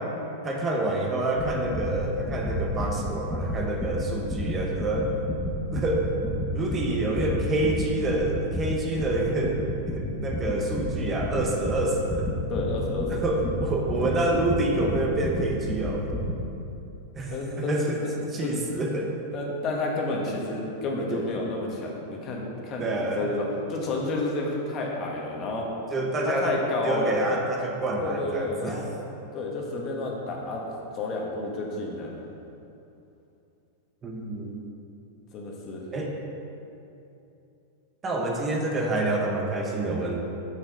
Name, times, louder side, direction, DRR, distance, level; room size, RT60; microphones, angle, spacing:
voice 1, 0.4-5.1 5.6-6.1 6.5-12.3 13.1-16.1 17.1-18.0 18.3-19.1 21.1-21.2 22.8-23.2 25.9-26.6 26.8-28.8 34.0-34.6 35.9-36.1 38.0-40.2, right 2 dB, 25° right, 0 dB, 1.0 m, -27 dB
sound 1, 1.4-16.4, equal, 5° left, 1.2 m, -31 dB
voice 2, 12.5-13.2 17.3-18.1 18.4-18.6 19.3-25.7 26.2-27.2 28.0-28.8 29.3-30.6 30.9-32.1 35.3-35.8, left 2 dB, 40° left, -1 dB, 1.5 m, -30 dB
6.4 x 6.3 x 5.4 m, 2.8 s
hypercardioid pair, 120°, 0 cm